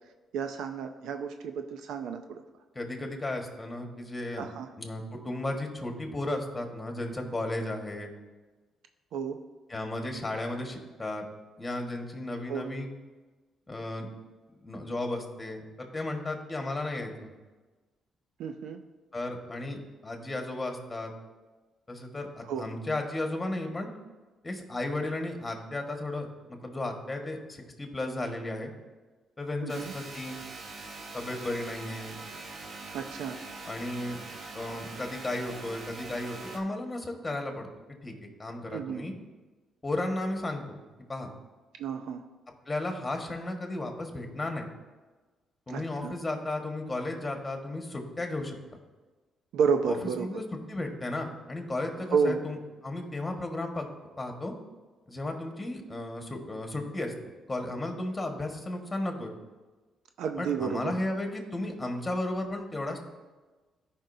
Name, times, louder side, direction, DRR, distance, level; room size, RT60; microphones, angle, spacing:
voice 1, 0.3-2.4 4.4-4.7 9.1-9.4 12.5-12.7 18.4-18.8 22.4-22.7 29.6-29.9 32.9-33.4 38.7-39.0 41.8-42.2 45.7-46.1 49.5-50.3 52.1-52.4 60.2-60.9, right 6 dB, 85° right, 6 dB, 0.5 m, -31 dB
voice 2, 2.7-4.4 4.8-8.1 9.7-11.2 11.6-12.9 13.7-14.1 14.6-17.3 19.1-19.8 20.0-21.1 21.9-23.9 24.4-28.7 29.4-30.4 31.1-32.2 33.6-34.2 34.5-37.7 38.0-38.1 38.4-39.1 39.8-40.8 41.1-41.3 42.6-44.7 45.7-48.8 49.9-52.6 52.8-53.9 54.2-54.5 55.1-57.1 57.5-59.3 60.4-63.0, left 2 dB, 20° left, 3 dB, 1.5 m, -34 dB
sound 1, 29.7-36.6, right 3 dB, 50° right, 1.0 m, -43 dB
14.0 x 5.3 x 2.7 m, 1.3 s
cardioid pair, 90°, 0 cm